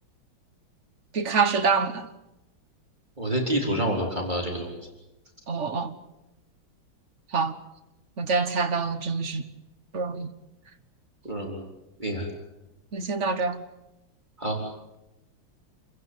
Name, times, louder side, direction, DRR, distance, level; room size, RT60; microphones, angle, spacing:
voice 1, 1.1-2.1 5.5-5.9 7.3-7.5 8.2-9.5 9.9-10.3 12.9-13.6, right 5 dB, 40° right, 1.5 m, -26 dB
voice 2, 3.2-4.8 11.2-11.6 12.0-12.3 14.4-14.6, right 1 dB, 20° right, 4.1 m, -28 dB
28.5 x 15.5 x 9.5 m
omnidirectional pair, 2.2 m